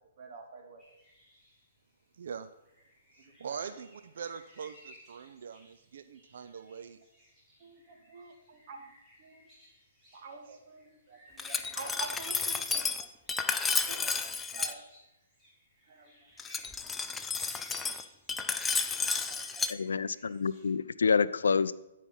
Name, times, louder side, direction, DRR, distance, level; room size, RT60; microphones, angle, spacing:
voice 1, 0.2-0.8 3.2-3.8 6.7-6.8 7.6-8.9 9.2-9.5 10.1-13.1 13.9-14.8 15.9-16.3 18.0-18.1 18.4-18.8 19.1-19.7, right 4 dB, 50° right, 4 dB, 1.5 m, -48 dB
sound 1, 0.8-20.7, equal, 10° right, 3.4 m, -59 dB
voice 2, 2.2-2.5 3.1-7.0, right 6 dB, 65° right, 11 dB, 0.4 m, -42 dB
Glass, 11.4-14.7 16.4-19.7, left 4 dB, 10° left, 0.4 m, -32 dB
voice 3, 19.7-21.7, left 5 dB, 80° left, 16 dB, 0.4 m, -27 dB
10.0 x 4.6 x 5.4 m, 0.94 s
hypercardioid pair, 135°, 0 cm